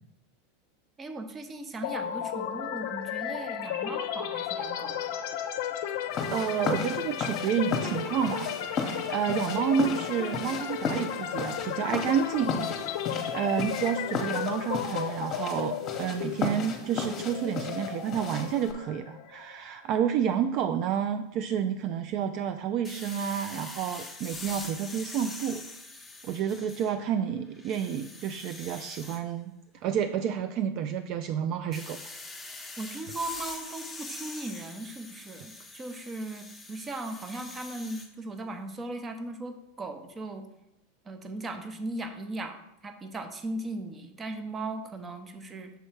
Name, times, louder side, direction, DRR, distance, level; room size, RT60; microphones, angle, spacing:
voice 1, 1.0-5.3 32.8-40.4 41.1-45.7, right 2 dB, 20° right, 7 dB, 0.7 m, -38 dB
sound 1, 1.8-19.6, left 10 dB, 65° left, 0.5 m, -34 dB
sound 2, 6.1-18.7, left 4 dB, 35° left, 0.9 m, -35 dB
voice 2, 6.3-12.6 12.9-13.0 13.3-25.6 26.2-29.5 29.8-32.0, right 8 dB, 50° right, 8 dB, 0.3 m, -30 dB
sound 3, 22.8-27.1 27.5-29.2 31.7-38.1, left 2 dB, 5° left, 0.8 m, -44 dB
6.5 x 3.2 x 4.6 m, 0.88 s
hypercardioid pair, 100°, 0 cm